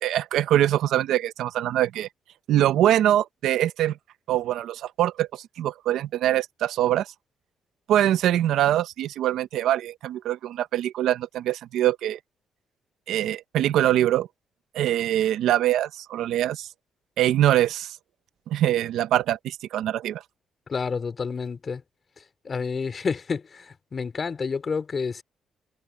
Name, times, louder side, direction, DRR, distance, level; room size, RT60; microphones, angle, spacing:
voice 1, 0.0-2.1 2.5-4.0 4.3-7.1 7.9-12.2 13.1-14.3 14.7-16.7 17.2-18.0 18.5-20.2, right 12 dB, 80° right, 1.0 m, -23 dB
voice 2, 20.7-21.8 22.4-25.2, left 5 dB, 40° left, 3.1 m, -29 dB
cardioid pair, 90°, 0 cm